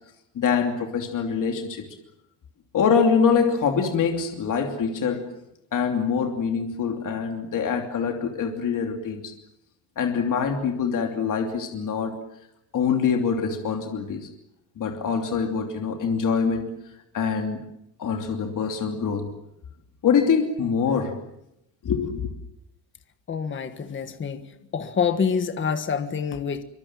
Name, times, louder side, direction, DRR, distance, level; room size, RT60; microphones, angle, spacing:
voice 1, 0.3-1.9 2.7-5.3 5.7-9.3 10.0-12.2 12.7-14.3 14.8-16.7 17.1-17.6 18.0-19.3 20.0-21.2 21.8-22.3, left 6 dB, 45° left, 4 dB, 3.0 m, -24 dB
voice 2, 23.3-24.4 24.7-26.6, left 6 dB, 25° left, 9 dB, 1.5 m, -26 dB
26.0 x 24.5 x 7.5 m, 0.82 s
cardioid pair, 180°, 45 cm